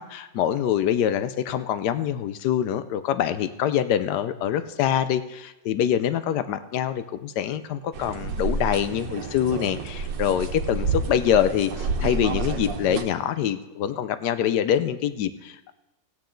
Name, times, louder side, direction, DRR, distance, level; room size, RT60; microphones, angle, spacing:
voice 1, 0.0-15.7, left 10 dB, 70° left, 12 dB, 1.2 m, -25 dB
sound 1, 7.9-13.0, right 4 dB, 75° right, 1.6 m, -29 dB
16.0 x 9.1 x 3.8 m, 0.96 s
omnidirectional pair, 2.0 m